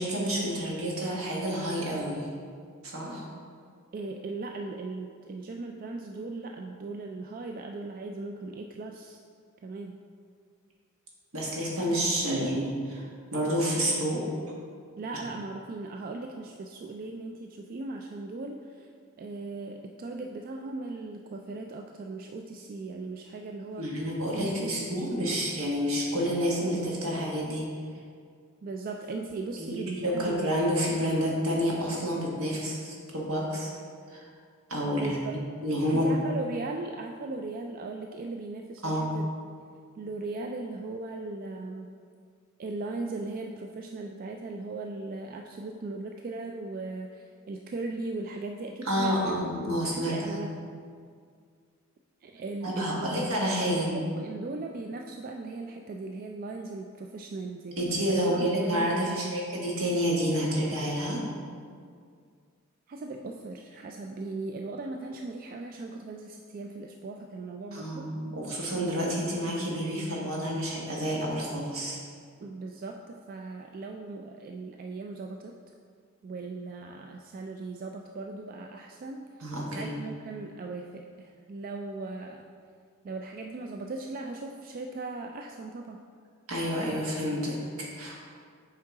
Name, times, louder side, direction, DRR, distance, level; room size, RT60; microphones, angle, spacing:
voice 1, 0.0-2.3 2.8-3.2 11.3-14.2 23.8-27.7 29.6-33.7 34.1-34.3 34.7-35.2 35.6-36.2 38.8-39.1 48.8-50.3 52.6-53.9 57.8-61.2 67.7-72.0 79.4-79.9 86.5-88.1, equal, 75° right, -3 dB, 1.5 m, -29 dB
voice 2, 3.9-9.2 9.6-10.0 15.0-18.9 19.2-23.9 24.3-25.4 28.6-30.5 34.9-35.4 35.9-39.5 39.9-41.9 42.6-49.4 49.8-50.5 52.2-53.1 53.7-57.8 58.1-59.2 62.9-68.1 72.4-75.6 76.2-82.4 83.0-86.0, right 3 dB, 40° right, 3 dB, 0.3 m, -38 dB
7.4 x 4.6 x 3.6 m, 2.1 s
head